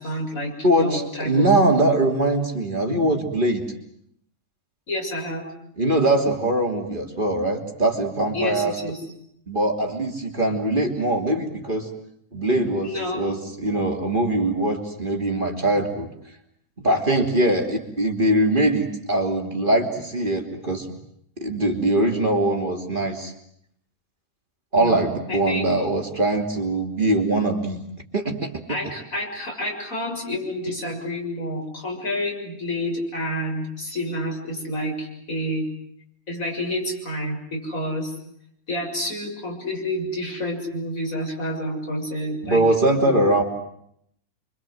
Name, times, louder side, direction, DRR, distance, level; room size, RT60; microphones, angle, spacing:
voice 1, 0.0-2.0 4.9-5.5 8.3-9.0 12.8-13.2 24.8-25.0 25.3-25.7 28.7-35.6 36.3-38.2 38.7-42.6 43.0-43.2, left 1 dB, 70° left, 1 dB, 7.1 m, -29 dB
voice 2, 0.6-3.6 5.8-8.7 9.5-11.9 12.3-16.1 16.8-20.9 21.4-23.3 24.7-27.8 28.1-28.8 42.4-43.4, right 1 dB, 35° right, 2 dB, 3.4 m, -22 dB
28.0 x 25.0 x 7.9 m, 0.72 s
omnidirectional pair, 1.5 m